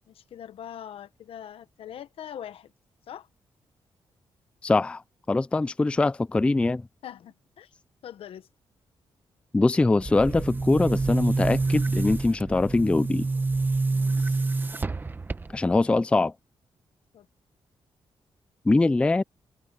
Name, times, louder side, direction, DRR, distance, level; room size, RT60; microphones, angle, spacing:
voice 1, 0.1-2.7 3.1-3.3 7.0-7.7 8.0-8.5 13.8-14.4 17.1-17.3, left 10 dB, 80° left, 1.1 m, -42 dB
voice 2, 4.6-5.0 5.3-6.9 9.5-13.3 15.5-16.3 18.7-19.2, left 2 dB, 10° left, 0.3 m, -22 dB
Boom, 10.0-15.8, right 3 dB, 20° right, 1.0 m, -27 dB
wide cardioid pair, 140°, 10 cm